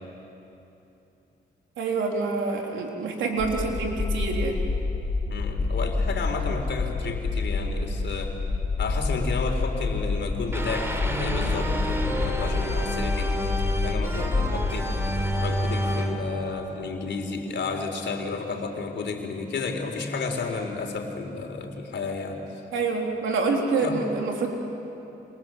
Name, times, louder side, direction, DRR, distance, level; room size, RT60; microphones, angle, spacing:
voice 1, 1.8-4.6 22.7-24.5, right 4 dB, 90° right, 1 dB, 3.8 m, -27 dB
sound 1, 3.4-15.5, left 3 dB, 50° left, 3.9 m, -28 dB
voice 2, 5.3-8.4 8.8-15.1 15.4-22.4 23.8-24.0, left 4 dB, 70° left, 4 dB, 3.9 m, -32 dB
sound 2, 10.5-17.5, equal, 15° right, 3.8 m, -30 dB
28.0 x 26.0 x 7.9 m, 2.9 s
cardioid pair, 65°, 19 cm